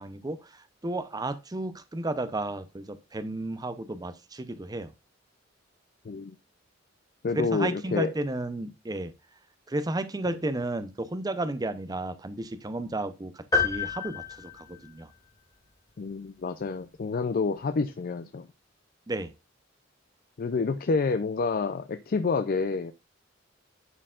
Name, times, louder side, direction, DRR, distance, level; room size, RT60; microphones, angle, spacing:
voice 1, 0.0-4.9 7.3-9.1 9.7-15.1 19.1-19.3, right 2 dB, 20° right, 0.6 m, -33 dB
voice 2, 6.0-6.4 7.2-8.1 10.3-10.4 16.0-18.5 20.4-22.9, left 4 dB, 50° left, 0.4 m, -28 dB
sound 1, 13.5-15.3, left 4 dB, 20° left, 2.3 m, -29 dB
11.0 x 4.5 x 2.4 m
head